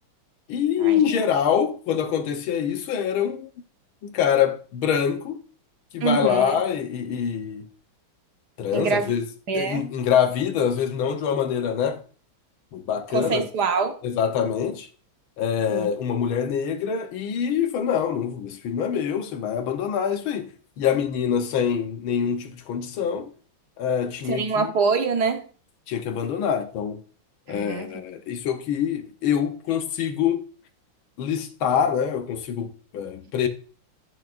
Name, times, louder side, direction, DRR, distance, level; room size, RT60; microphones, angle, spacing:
voice 1, 0.5-3.5 4.0-5.4 5.9-7.7 8.6-9.3 9.5-12.0 12.7-13.5 14.0-14.9 15.4-23.3 23.8-24.7 25.9-27.0 27.5-30.4 31.2-33.5, left 8 dB, 90° left, 1.8 m, -25 dB
voice 2, 6.0-6.5 8.7-9.1 9.5-9.8 13.1-13.9 15.7-15.9 24.3-25.4 27.5-27.9, right 5 dB, 60° right, 1.6 m, -24 dB
9.7 x 9.4 x 2.5 m
omnidirectional pair, 2.2 m